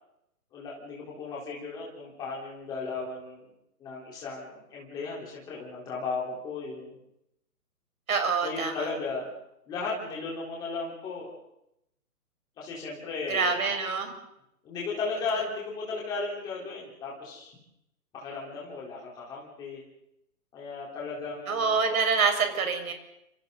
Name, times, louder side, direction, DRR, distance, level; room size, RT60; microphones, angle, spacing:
voice 1, 0.5-3.5 3.8-7.0 8.4-9.3 9.7-11.3 12.6-13.6 14.6-17.5 18.1-19.8 20.5-21.9, left 4 dB, 10° left, -4 dB, 4.0 m, -35 dB
voice 2, 8.1-8.7 13.3-14.1 21.5-22.9, right 5 dB, 60° right, 4 dB, 5.9 m, -26 dB
29.5 x 27.5 x 4.0 m, 0.80 s
hypercardioid pair, 180°, 46 cm